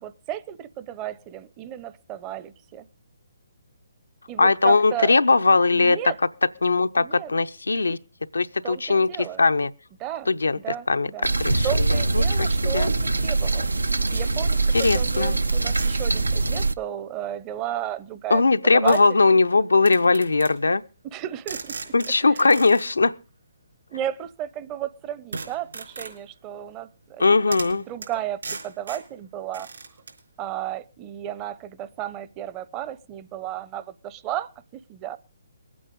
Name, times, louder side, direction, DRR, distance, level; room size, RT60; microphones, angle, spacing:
voice 1, 0.0-2.9 4.3-5.2 5.7-6.2 7.0-7.3 8.6-9.4 10.0-10.3 10.5-11.3 11.6-13.7 14.1-18.4 18.7-19.2 21.0-21.9 22.2-22.5 23.9-29.7 30.4-34.5 34.9-35.2, right 11 dB, 25° right, 0.7 m, -34 dB
voice 2, 4.4-6.0 6.6-8.0 8.3-9.1 9.4-9.7 10.3-11.1 11.4-12.9 14.7-15.4 18.3-20.8 21.9-23.1 27.2-27.9, left 3 dB, 85° left, 0.7 m, -20 dB
sound 1, 11.2-16.7, right 3 dB, 90° right, 0.7 m, -23 dB
sound 2, 13.9-14.3 14.8-15.2 15.7-16.1 17.5-17.6 18.9-19.1 19.8-20.6 21.5-22.9 25.3-26.2 27.2-27.3 27.5-27.8 28.0-28.1 28.4-29.1 29.5-30.2, right 4 dB, 75° right, 4.7 m, -37 dB
21.0 x 8.7 x 5.2 m
figure-of-eight pair, 140°, 0 cm